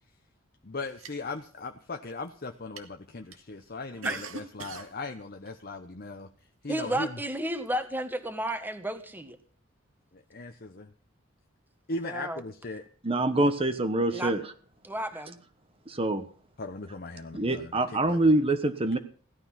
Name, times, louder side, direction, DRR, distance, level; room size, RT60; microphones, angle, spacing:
voice 1, 0.6-6.3 6.6-7.2 10.1-10.9 11.9-12.9 16.6-18.2, left 2 dB, 45° left, 5 dB, 0.9 m, -38 dB
sound 1, 0.8-1.6 2.1-2.4 2.8-2.9 3.3-3.4 3.9-4.9 5.5-5.6 6.8-6.9 7.6-7.7, right 4 dB, 90° right, 2.1 m, -42 dB
voice 2, 6.7-9.4 12.0-12.4 14.1-14.3 14.8-15.4, right 1 dB, 10° right, 8 dB, 1.5 m, -32 dB
voice 3, 13.0-14.4 15.9-16.2 17.3-19.0, right 2 dB, 25° right, 9 dB, 1.2 m, -25 dB
17.0 x 12.0 x 5.8 m, 0.43 s
head